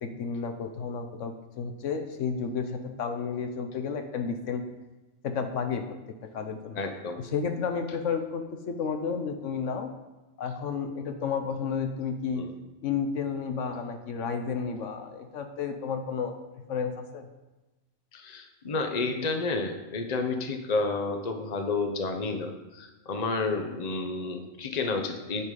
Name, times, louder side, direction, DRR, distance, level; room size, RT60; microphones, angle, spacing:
voice 1, 0.0-4.6 5.2-5.8 6.3-6.8 7.2-9.9 10.4-12.4 12.8-16.4 16.7-17.3, left 6 dB, 75° left, 6 dB, 1.1 m, -32 dB
voice 2, 6.8-7.2 12.3-12.5 18.1-25.4, left 3 dB, 35° left, 5 dB, 0.9 m, -30 dB
9.7 x 5.6 x 5.2 m, 1.1 s
omnidirectional pair, 1.3 m